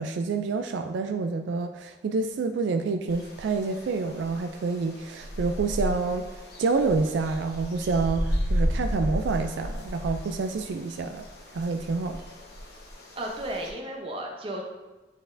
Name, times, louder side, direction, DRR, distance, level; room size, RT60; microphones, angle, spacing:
voice 1, 0.0-6.3 6.6-11.3 11.5-12.2, right 4 dB, 70° right, 6 dB, 0.3 m, -28 dB
sound 1, 3.1-13.7, equal, 55° left, 1.1 m, -33 dB
voice 2, 13.2-14.6, right 1 dB, 30° right, 1 dB, 0.7 m, -34 dB
9.0 x 4.1 x 2.6 m, 1.2 s
head